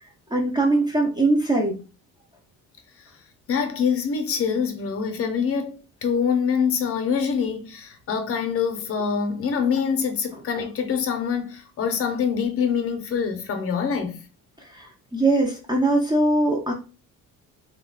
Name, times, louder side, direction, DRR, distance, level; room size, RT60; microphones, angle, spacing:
voice 1, 0.3-1.8 14.7-16.7, right 2 dB, 15° right, 0.4 m, -21 dB
voice 2, 3.5-14.3, left 6 dB, 45° left, 0.5 m, -25 dB
2.3 x 2.1 x 3.7 m
cardioid pair, 145°, 33 cm